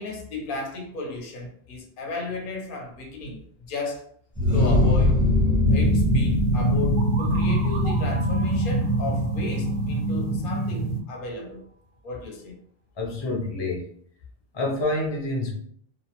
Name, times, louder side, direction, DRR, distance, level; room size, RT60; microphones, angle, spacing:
voice 1, 0.0-4.1 4.5-5.2 5.7-11.6 12.0-12.6, left 3 dB, 60° left, 0.8 m, -34 dB
sound 1, 4.4-9.9, left 2 dB, 20° left, 0.8 m, -24 dB
sound 2, 5.7-11.0, right 2 dB, 85° left, 0.9 m, -24 dB
sound 3, 7.0-10.7, right 4 dB, 60° right, 0.6 m, -41 dB
voice 2, 13.0-13.9 14.5-15.5, left 2 dB, 40° left, 0.4 m, -28 dB
2.5 x 2.0 x 2.8 m
omnidirectional pair, 1.1 m